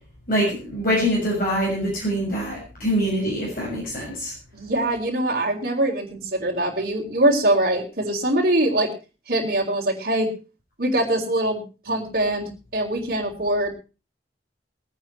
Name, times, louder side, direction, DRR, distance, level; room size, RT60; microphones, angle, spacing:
voice 1, 0.3-4.3, equal, 55° left, -4 dB, 6.7 m, -24 dB
voice 2, 4.5-8.9 9.3-10.3 10.8-13.7, right 1 dB, 55° right, -2 dB, 3.8 m, -23 dB
21.0 x 9.4 x 4.5 m, 0.33 s
head